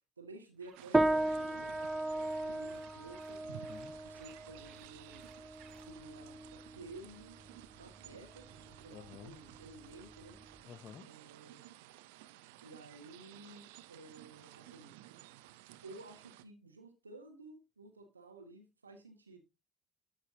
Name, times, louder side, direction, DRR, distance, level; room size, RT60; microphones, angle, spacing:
voice 1, 0.2-3.7 4.0-5.3 5.7-7.4 7.7-10.4 11.1-11.6 12.6-14.9 15.8-19.4, right 3 dB, 85° right, 0.8 m, -53 dB
sound 1, 0.6-5.9, right 9 dB, 50° right, 1.1 m, -62 dB
sound 2, 0.7-16.4, right 15 dB, 65° right, 0.4 m, -56 dB
sound 3, 0.9-10.6, right 2 dB, 10° right, 0.5 m, -37 dB
voice 2, 3.5-4.1 8.9-9.4 10.6-11.2, left 7 dB, 45° left, 0.5 m, -52 dB
12.0 x 5.1 x 2.7 m
figure-of-eight pair, 60°, 0 cm